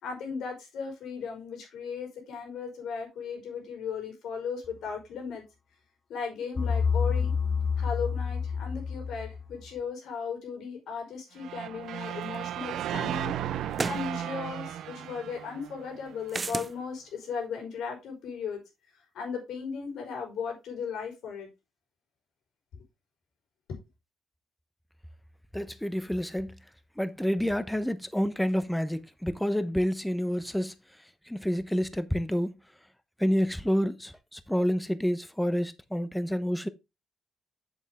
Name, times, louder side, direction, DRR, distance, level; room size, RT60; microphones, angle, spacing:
voice 1, 0.0-5.4 6.1-7.3 7.8-13.3 13.8-18.6 19.1-21.5 23.7-23.8, left 6 dB, 75° left, 4.9 m, -36 dB
sound 1, 6.6-9.7, left 6 dB, 35° left, 0.9 m, -28 dB
sound 2, 11.4-16.4, right 11 dB, 80° right, 0.8 m, -35 dB
sound 3, 12.3-12.4 13.7-14.1 16.3-16.7, right 3 dB, 30° right, 0.4 m, -31 dB
voice 2, 25.5-26.6 27.0-32.5 33.2-36.7, equal, 5° left, 0.8 m, -29 dB
8.1 x 7.2 x 3.6 m
cardioid pair, 90°, 0 cm